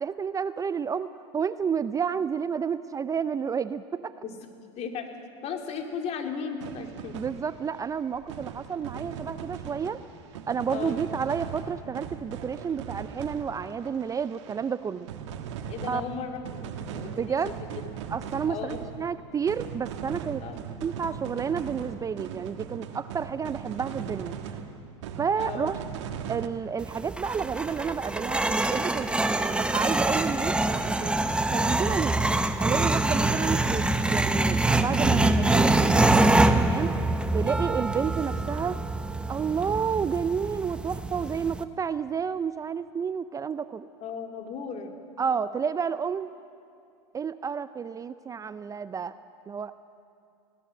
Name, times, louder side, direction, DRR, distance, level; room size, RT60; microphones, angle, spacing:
voice 1, 0.0-4.1 7.1-10.0 10.5-15.1 15.9-16.0 17.2-17.5 18.1-20.4 20.8-24.4 25.2-25.8 26.3-31.2 31.5-32.2 32.6-36.9 37.3-38.8 39.3-43.9 45.2-46.3 47.1-49.2 49.5-49.7, right 6 dB, 20° right, 14 dB, 0.5 m, -30 dB
voice 2, 4.8-5.1 5.4-7.2 10.7-11.0 15.7-16.6 16.9-17.7 18.5-18.8 20.4-20.6 25.4-25.7 44.0-44.9, left 6 dB, 45° left, 4 dB, 2.7 m, -35 dB
sound 1, 6.6-14.8 15.1-26.5, right 8 dB, 80° right, 1.6 m, -39 dB
sound 2, 26.8-41.6, right 2 dB, 5° right, 0.9 m, -25 dB
21.0 x 17.0 x 7.6 m, 2.4 s
hypercardioid pair, 100°, 15 cm